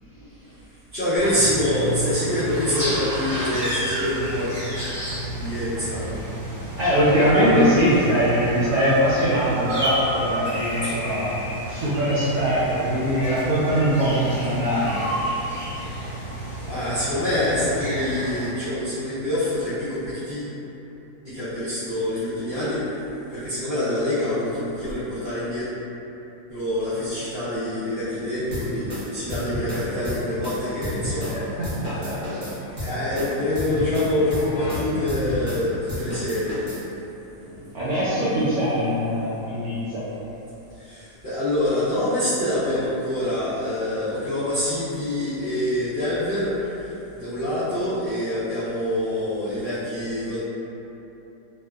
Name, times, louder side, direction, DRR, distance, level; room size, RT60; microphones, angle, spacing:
voice 1, 0.9-4.5 5.4-6.1 10.8-10.9 16.7-20.5 21.3-22.8 23.3-25.7 26.5-28.9 29.1-31.4 31.9-36.6 40.8-46.5 47.1-50.4, left 1 dB, 55° left, -16 dB, 0.7 m, -26 dB
sound 1, 1.2-18.5, right 1 dB, 10° right, 1.3 m, -31 dB
voice 2, 6.8-11.3 11.7-15.0 31.3-32.4 37.4-40.0, equal, 70° right, -11 dB, 1.0 m, -22 dB
sound 2, 28.5-31.4 31.6-35.6 35.9-36.8, left 1 dB, 45° right, 0.6 m, -31 dB
sound 3, 29.7-35.6, left 2 dB, 75° left, 1.1 m, -41 dB
2.8 x 2.4 x 2.2 m, 3.0 s
omnidirectional pair, 1.8 m